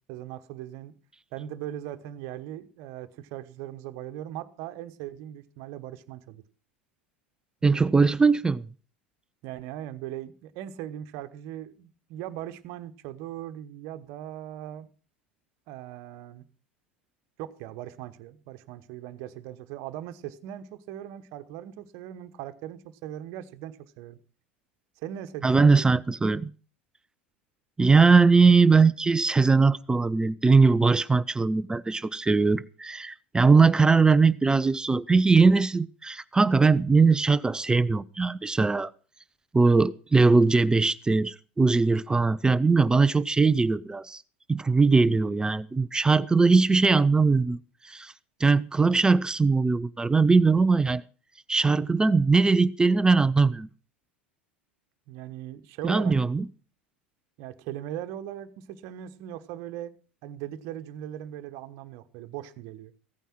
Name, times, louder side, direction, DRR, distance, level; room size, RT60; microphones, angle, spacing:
voice 1, 0.1-0.9 1.3-6.4 7.6-7.9 9.4-14.9 15.7-16.4 17.4-24.2 25.0-26.0 48.9-49.1 55.1-56.4 57.4-59.9 60.2-62.9, right 12 dB, 55° right, 1.2 m, -39 dB
voice 2, 7.6-8.6 25.4-26.5 27.8-38.9 39.5-44.2 44.5-47.6 47.9-48.1 48.4-51.0 51.5-53.7 55.8-56.5, right 4 dB, 10° right, 0.6 m, -21 dB
16.0 x 9.2 x 6.0 m
hypercardioid pair, 85°, 7 cm